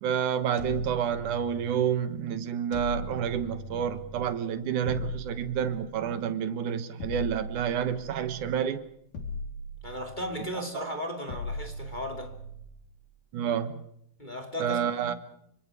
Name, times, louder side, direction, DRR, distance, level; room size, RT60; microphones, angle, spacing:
voice 1, 0.0-8.8 13.3-13.8 14.6-15.1, right 8 dB, 60° right, 2.3 m, -29 dB
sound 1, 0.6-1.9 2.7-4.4 4.9-6.3 7.0-8.6 9.1-10.5 11.3-12.9, left 1 dB, 50° left, 4.9 m, -39 dB
voice 2, 9.8-12.4 14.2-15.1, left 1 dB, 15° left, 2.1 m, -36 dB
28.0 x 25.0 x 5.0 m
omnidirectional pair, 4.8 m